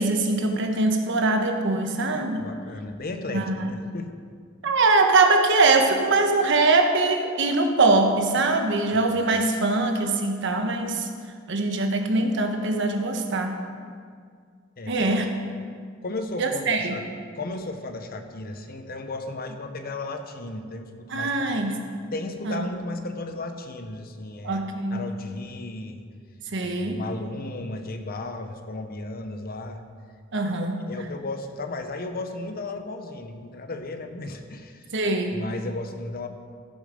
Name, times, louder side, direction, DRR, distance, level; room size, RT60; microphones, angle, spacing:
voice 1, 0.0-2.4 3.3-3.7 4.6-11.1 11.5-13.6 14.9-15.2 16.4-17.0 21.1-21.8 22.4-22.6 24.4-25.0 26.5-27.0 30.3-30.7 34.9-35.4, right 3 dB, 65° right, 4 dB, 1.2 m, -22 dB
voice 2, 2.4-4.1 9.0-9.1 14.8-15.2 16.0-17.0 17.4-21.7 22.1-24.6 24.9-26.0 26.6-29.8 30.6-34.9 35.3-36.3, left 2 dB, 50° left, 6 dB, 0.9 m, -35 dB
15.5 x 6.7 x 5.2 m, 2.1 s
head